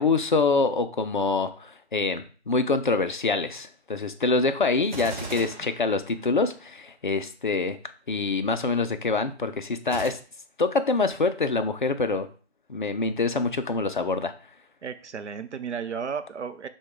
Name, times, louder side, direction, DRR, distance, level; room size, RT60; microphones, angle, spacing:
voice 1, 0.0-7.8 8.1-10.2 10.6-12.3 12.7-14.3, left 3 dB, 45° left, 9 dB, 0.4 m, -25 dB
Gunshot gunfire, 4.8-6.6 9.8-10.1, right 3 dB, 45° right, 0.8 m, -37 dB
voice 2, 14.8-16.7, right 6 dB, 90° right, 10 dB, 0.6 m, -33 dB
6.1 x 2.3 x 3.7 m, 0.41 s
figure-of-eight pair, 160°, 34 cm